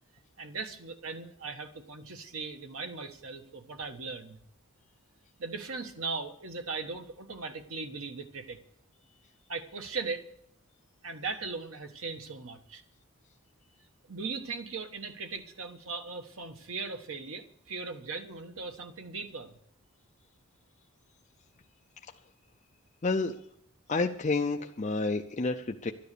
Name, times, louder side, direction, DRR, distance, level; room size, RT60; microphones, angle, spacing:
voice 1, 0.4-4.4 5.4-8.6 9.5-10.3 11.0-12.8 14.1-19.6, right 4 dB, 70° right, 6 dB, 1.3 m, -38 dB
voice 2, 23.0-23.3 23.9-25.9, left 3 dB, 35° left, 3 dB, 0.5 m, -29 dB
12.5 x 10.5 x 6.8 m, 0.68 s
head